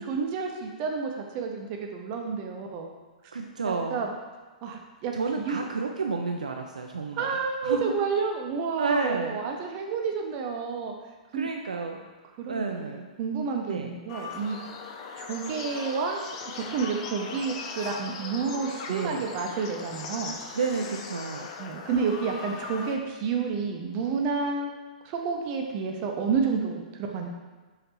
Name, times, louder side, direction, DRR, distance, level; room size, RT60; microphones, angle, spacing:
voice 1, 0.0-2.9 3.7-4.1 4.6-5.1 5.5-5.6 7.2-10.9 11.3-11.5 12.4-14.6 15.2-16.2 16.5-20.3 21.6-24.7 25.0-26.8 27.1-27.3, right 5 dB, 35° right, 1 dB, 0.6 m, -30 dB
voice 2, 3.3-4.0 5.1-7.3 7.6-7.9 8.8-9.7 11.3-12.0 12.5-13.1 13.7-13.9 18.9-19.3 20.5-21.5, right 4 dB, 75° right, 3 dB, 0.3 m, -31 dB
sound 1, 14.1-23.0, left 5 dB, 45° left, 0.4 m, -39 dB
5.2 x 2.8 x 2.9 m, 1.3 s
figure-of-eight pair, 110°, 4 cm